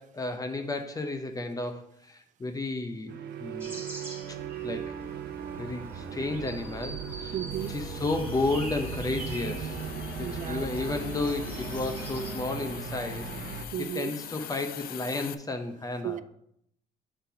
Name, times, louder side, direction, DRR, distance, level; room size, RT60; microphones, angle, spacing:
voice 1, 0.0-3.2 3.4-3.8 4.6-4.9 5.6-7.4 7.7-9.8 10.2-16.2, left 2 dB, 20° left, 0.7 m, -33 dB
sound 1, 3.1-13.7, right 5 dB, 65° right, 0.8 m, -37 dB
sound 2, 3.6-12.4, right 1 dB, 15° right, 1.5 m, -45 dB
voice 2, 7.3-7.7 10.2-10.7 13.7-14.1 16.0-16.2, right 11 dB, 50° right, 0.4 m, -34 dB
Hiss, 7.5-15.3, left 11 dB, 60° left, 0.5 m, -44 dB
6.5 x 4.0 x 5.6 m
cardioid pair, 110°, 17 cm